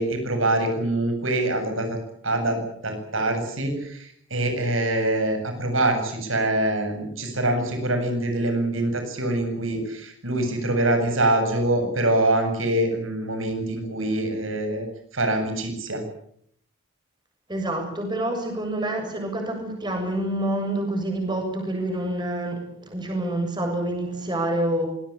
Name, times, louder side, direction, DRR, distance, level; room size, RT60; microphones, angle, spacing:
voice 1, 0.0-2.0 2.2-14.9 15.1-16.0, right 1 dB, 75° right, 6 dB, 8.0 m, -24 dB
voice 2, 17.5-24.9, right 1 dB, 20° right, 3 dB, 7.3 m, -27 dB
25.5 x 20.5 x 8.8 m, 0.67 s
head